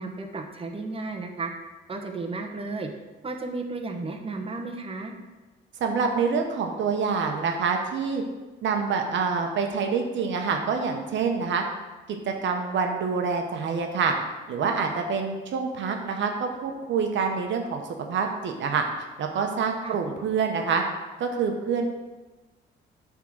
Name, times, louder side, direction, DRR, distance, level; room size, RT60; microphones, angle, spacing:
voice 1, 0.0-1.5 1.9-2.9 3.2-5.1 19.8-20.0, right 3 dB, 30° right, 3 dB, 1.0 m, -33 dB
voice 2, 5.8-8.2 8.6-11.6 12.1-14.1 14.5-17.8 18.1-18.8 19.2-20.8 21.2-21.9, right 5 dB, 70° right, 3 dB, 0.9 m, -26 dB
8.1 x 3.7 x 6.3 m, 1.2 s
cardioid pair, 90°, 20 cm